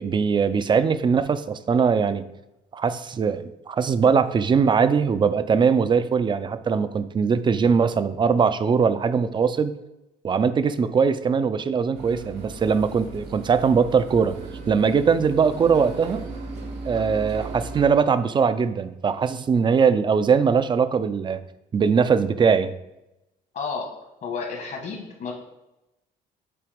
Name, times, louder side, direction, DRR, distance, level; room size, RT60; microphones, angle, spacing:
voice 1, 0.0-2.2 2.7-9.7 10.2-14.4 14.7-16.2 16.8-21.4 21.7-22.7, right 6 dB, 30° right, 12 dB, 0.4 m, -21 dB
sound 1, 11.9-17.9, right 3 dB, 90° right, 1.4 m, -37 dB
voice 2, 23.5-23.9 24.2-25.3, left 5 dB, 60° left, 2 dB, 1.5 m, -31 dB
7.8 x 3.4 x 5.1 m, 0.93 s
cardioid pair, 110°, 17 cm